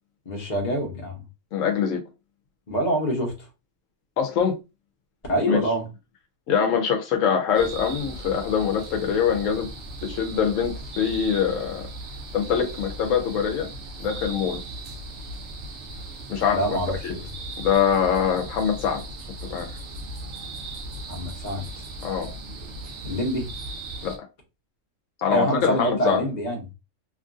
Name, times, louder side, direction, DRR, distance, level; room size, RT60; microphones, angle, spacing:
voice 1, 0.2-1.2 2.7-3.5 5.3-5.9 16.5-17.2 21.1-21.8 23.0-23.5 25.3-26.6, right 1 dB, 35° left, 1.0 m, -26 dB
voice 2, 1.5-2.0 4.2-4.5 5.5-5.6 6.5-9.7 10.0-11.9 12.3-13.7 14.0-14.6 16.3-17.2 17.6-19.0 19.5-19.7 22.0-22.3 24.0-24.1 25.2-26.2, left 7 dB, 80° left, 1.0 m, -24 dB
sound 1, 7.5-24.2, right 2 dB, 90° right, 1.0 m, -37 dB
2.9 x 2.5 x 2.4 m
omnidirectional pair, 1.3 m